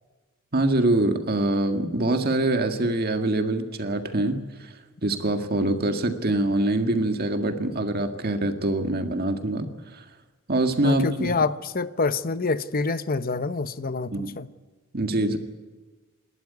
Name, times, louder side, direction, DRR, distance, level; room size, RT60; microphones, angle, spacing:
voice 1, 0.5-4.7 5.0-10.0 10.5-11.3 14.1-14.3 14.9-15.4, right 2 dB, 50° right, 1.8 m, -24 dB
voice 2, 10.8-14.5, left 4 dB, 45° left, 0.9 m, -26 dB
27.5 x 12.5 x 9.7 m
head